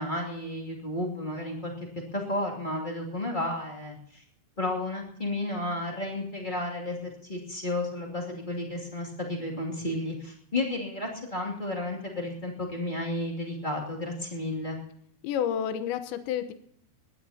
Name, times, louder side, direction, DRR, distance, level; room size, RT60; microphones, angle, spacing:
voice 1, 0.0-1.9 2.1-4.2 4.6-14.8, left 1 dB, 20° left, -1 dB, 1.3 m, -32 dB
voice 2, 15.2-16.5, left 9 dB, 80° left, 10 dB, 3.2 m, -30 dB
21.0 x 18.0 x 2.9 m, 0.66 s
omnidirectional pair, 5.2 m